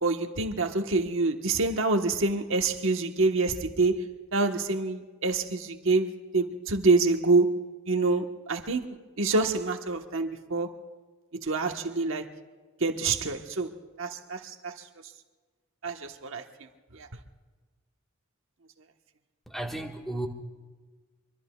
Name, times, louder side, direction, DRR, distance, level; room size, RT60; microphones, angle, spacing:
voice 1, 0.0-4.0 4.3-7.6 7.9-10.7 11.3-12.2 12.8-14.7 15.8-16.4 16.9-17.1, right 3 dB, 60° right, 1.2 m, -26 dB
voice 2, 19.5-20.3, right 1 dB, ahead, 1.5 m, -34 dB
25.0 x 25.0 x 2.3 m
head